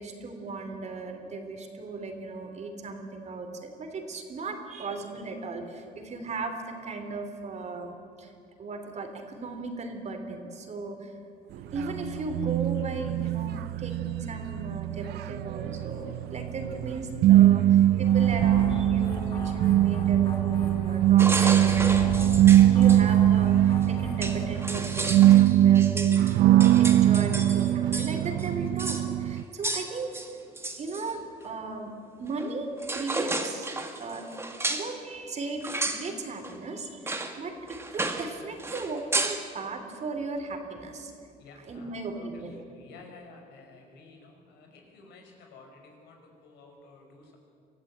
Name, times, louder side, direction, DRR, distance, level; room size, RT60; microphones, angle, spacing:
voice 1, 0.0-8.3 8.6-11.1 11.5-22.0 22.3-22.4 22.7-30.2 30.8-31.9 32.2-34.3 34.7-41.1 41.6-42.6, right 3 dB, 40° right, 6 dB, 3.1 m, -37 dB
sound 1, 11.7-29.4, right 12 dB, 75° right, 0.6 m, -22 dB
sound 2, 18.0-24.9, left 3 dB, 30° left, 5.7 m, -38 dB
sound 3, 21.2-23.0 23.8-23.9 24.2-28.1 28.4-28.5 28.8-29.1 29.6-31.1 32.4-32.5 32.8-34.9 35.6-36.1 36.4-36.6 37.1-37.4 37.7-38.3 38.6-39.4, right 2 dB, 15° right, 1.9 m, -32 dB
voice 2, 41.4-47.4, left 3 dB, 80° left, 2 dB, 5.3 m, -52 dB
24.0 x 15.0 x 8.7 m, 2.4 s
cardioid pair, 110°, 17 cm